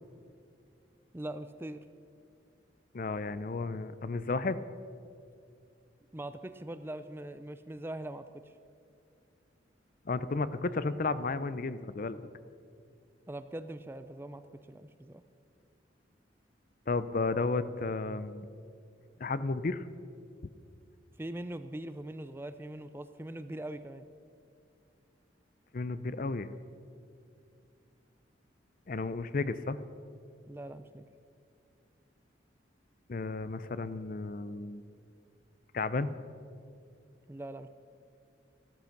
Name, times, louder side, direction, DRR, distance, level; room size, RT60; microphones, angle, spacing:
voice 1, 1.1-1.8 6.1-8.5 13.3-14.4 14.7-15.2 21.2-24.0 30.5-31.1 37.3-37.7, right 1 dB, 10° right, 11 dB, 0.4 m, -41 dB
voice 2, 2.9-4.6 10.1-12.2 16.9-18.5 19.2-19.8 25.7-26.5 28.9-29.8 33.1-34.8 35.7-36.1, left 3 dB, 45° left, 14 dB, 0.5 m, -33 dB
14.5 x 13.0 x 5.9 m, 2.4 s
head